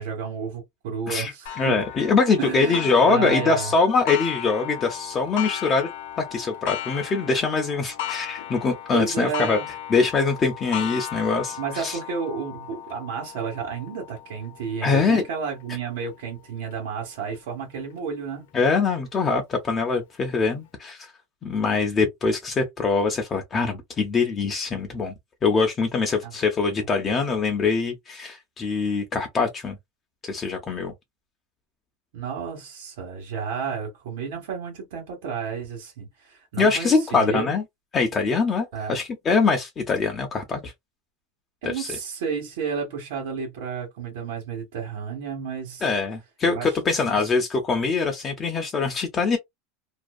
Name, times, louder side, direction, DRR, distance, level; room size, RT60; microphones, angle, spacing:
voice 1, 0.0-1.8 2.4-3.7 8.9-9.6 11.6-18.5 26.2-26.3 32.1-37.5 38.7-39.0 41.6-45.9 46.5-46.7 47.0-47.2, right 6 dB, 80° right, 1.1 m, -31 dB
Clock, 1.5-16.8 17.4-17.5 18.0-18.1 19.1-19.2, left 11 dB, 80° left, 0.5 m, -36 dB
voice 2, 1.6-5.9 6.2-9.6 9.9-12.0 14.8-15.2 18.5-21.1 21.4-25.1 25.4-29.8 30.2-30.9 36.6-37.6 37.9-40.7 41.6-42.0 45.8-49.4, left 4 dB, 25° left, 0.5 m, -23 dB
2.5 x 2.2 x 2.3 m
supercardioid pair, 145°, 0 cm